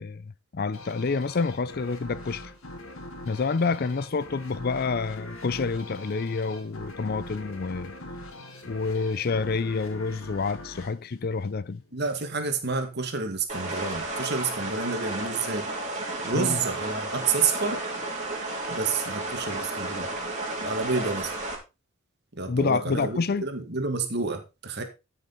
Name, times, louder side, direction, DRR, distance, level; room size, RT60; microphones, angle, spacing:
voice 1, 0.0-2.5 3.2-7.9 8.7-11.8 16.3-16.6 22.5-23.4, left 4 dB, 45° left, 0.5 m, -28 dB
sound 1, 0.7-12.0, left 1 dB, 70° left, 2.5 m, -42 dB
voice 2, 11.9-15.7 16.2-17.8 18.7-20.1 20.6-21.3 22.3-24.8, right 4 dB, 50° right, 2.1 m, -29 dB
sound 2, 13.5-21.6, right 2 dB, 30° right, 3.6 m, -32 dB
13.5 x 6.5 x 4.1 m
head